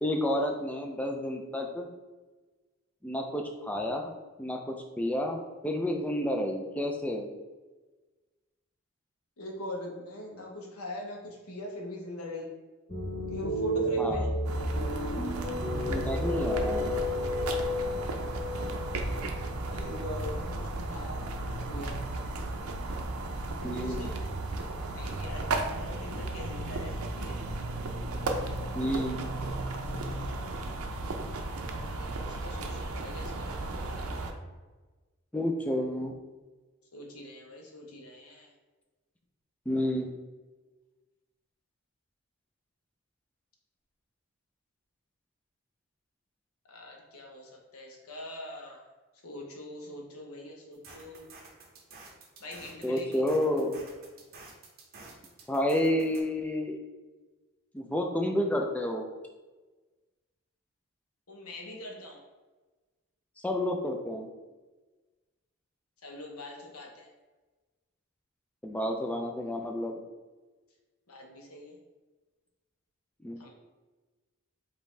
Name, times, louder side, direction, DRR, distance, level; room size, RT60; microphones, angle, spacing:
voice 1, 0.0-1.9 3.0-4.1 4.4-7.3 14.0-14.3 15.9-16.9 23.6-24.1 28.7-29.3 35.3-36.1 39.7-40.1 52.8-53.7 55.5-56.8 57.7-59.1 63.4-64.3 68.6-70.0 73.2-73.4, left 1 dB, 5° left, 3 dB, 0.3 m, -30 dB
voice 2, 9.4-12.5 13.3-14.3 19.7-21.4 21.7-22.0 23.6-24.1 24.9-25.5 25.7-27.4 32.0-33.5 36.9-38.5 46.7-48.8 49.2-51.3 52.4-53.2 61.3-62.2 66.0-67.1 71.1-71.7 73.4-73.5, left 1 dB, 90° left, 0 dB, 0.9 m, -42 dB
sound 1, 12.9-20.4, left 1 dB, 25° left, 0.7 m, -32 dB
sound 2, 14.4-34.3, right 2 dB, 90° right, 0.5 m, -34 dB
sound 3, 50.7-56.2, right 3 dB, 45° right, 0.8 m, -51 dB
5.1 x 2.7 x 3.2 m, 1.3 s
head